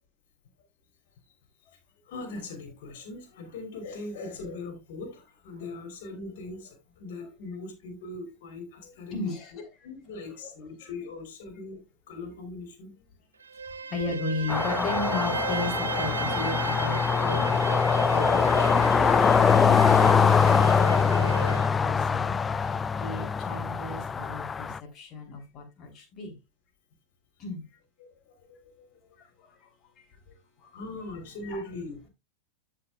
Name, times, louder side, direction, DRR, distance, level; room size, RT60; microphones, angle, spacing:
voice 1, 2.0-9.3 9.8-11.8 12.1-13.0 28.0-29.1 30.3-30.4 30.7-32.0, left 2 dB, 50° left, 3.3 m, -40 dB
voice 2, 9.1-9.5 13.9-17.6 18.1-20.6 21.1-21.5 21.8-26.3 27.4-27.6 29.2-29.3 30.6-30.7 31.4-31.6, left 3 dB, 30° left, 3.4 m, -35 dB
Bowed string instrument, 13.4-21.7, right 5 dB, 70° right, 0.8 m, -34 dB
sound 1, 14.5-24.8, left 6 dB, 15° left, 0.3 m, -23 dB
14.0 x 5.3 x 2.3 m
figure-of-eight pair, 90°, 0 cm